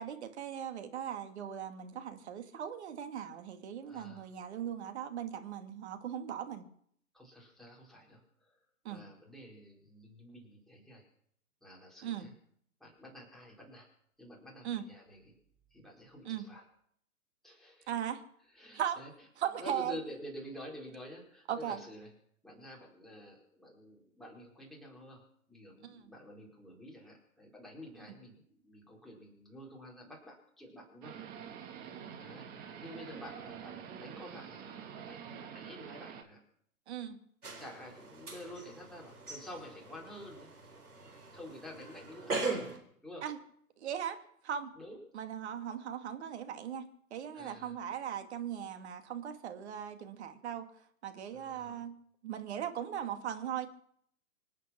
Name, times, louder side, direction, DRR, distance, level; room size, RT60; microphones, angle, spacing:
voice 1, 0.0-6.7 8.8-9.0 12.0-12.3 14.6-14.8 16.3-16.4 17.9-18.2 18.7-19.0 19.4-20.0 21.5-21.8 25.8-26.0 31.8-32.1 36.9-37.2 43.2-43.4 43.8-44.2 44.4-44.7 45.1-46.8 47.1-50.7 51.0-52.0 52.2-53.7, right 9 dB, 45° right, 7 dB, 2.3 m, -38 dB
voice 2, 3.9-4.3 7.1-8.6 8.9-11.1 11.6-12.3 12.8-13.9 14.2-15.4 15.7-16.6 17.4-17.9 18.5-19.1 19.4-22.1 22.4-25.2 25.5-31.2 32.2-36.4 37.6-40.7 41.2-43.2 44.7-45.0 47.3-47.7 51.3-51.8, equal, ahead, -3 dB, 4.8 m, -49 dB
sound 1, 31.0-36.2, right 8 dB, 20° right, 1.7 m, -47 dB
sound 2, 37.4-42.8, right 3 dB, 90° right, 4.0 m, -41 dB
25.5 x 9.2 x 6.0 m, 0.65 s
hypercardioid pair, 130°, 44 cm